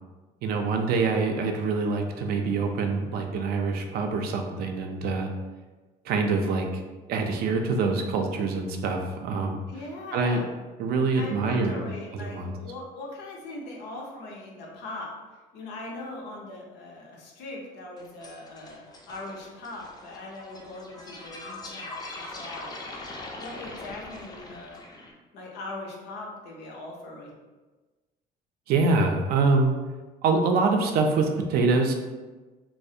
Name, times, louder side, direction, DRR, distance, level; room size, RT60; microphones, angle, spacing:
voice 1, 0.4-5.3 6.0-6.8 7.1-9.6 10.1-10.4 10.8-11.8 12.1-12.5 28.7-29.7 30.2-31.9, right 3 dB, 65° right, 4 dB, 0.4 m, -25 dB
voice 2, 9.7-10.4 11.1-15.1 15.5-22.8 23.4-24.8 25.3-27.4, left 2 dB, 80° left, -1 dB, 0.6 m, -40 dB
sound 1, 18.0-25.1, left 2 dB, 25° left, 0.4 m, -42 dB
2.3 x 2.0 x 2.6 m, 1.2 s
cardioid pair, 110°, 17 cm